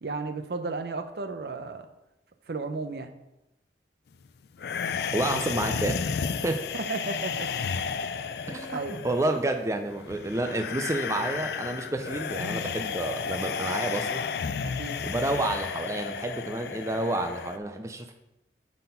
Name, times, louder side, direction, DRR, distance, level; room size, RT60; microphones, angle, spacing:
voice 1, 0.0-1.9 2.5-3.1 6.7-7.5 8.0-9.1 14.6-15.0, right 3 dB, 60° right, 7 dB, 0.6 m, -34 dB
sound 1, 4.6-17.6, left 6 dB, 60° left, 0.3 m, -33 dB
voice 2, 5.1-6.0 6.4-6.6 8.5-14.2 15.0-18.1, right 2 dB, 15° right, 6 dB, 0.4 m, -29 dB
7.9 x 4.2 x 5.5 m, 0.95 s
head